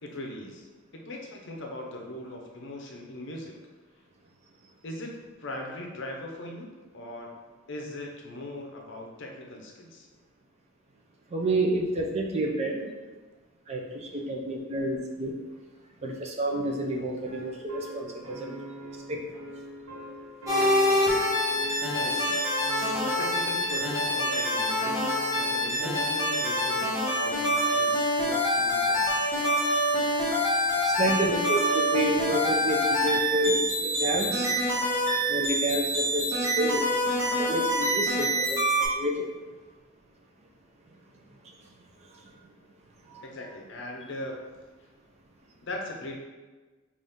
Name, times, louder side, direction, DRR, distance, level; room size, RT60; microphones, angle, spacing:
voice 1, 0.0-0.7 0.9-3.5 4.8-5.1 5.4-7.3 7.7-10.1 21.9-22.4 23.0-29.3 43.2-44.4 45.6-46.2, left 1 dB, 60° left, 1 dB, 0.6 m, -39 dB
voice 2, 11.3-12.9 13.7-15.3 16.0-18.6 19.1-19.2 22.2-22.4 22.8-23.0 31.0-34.5 35.3-36.8 37.4-38.6 38.9-39.2, right 1 dB, 30° right, 0 dB, 0.4 m, -29 dB
sound 1, 17.3-26.7, equal, 75° right, 0.8 m, -41 dB
sound 2, 20.5-38.9, equal, 15° right, 1.1 m, -26 dB
3.9 x 2.5 x 3.5 m, 1.3 s
head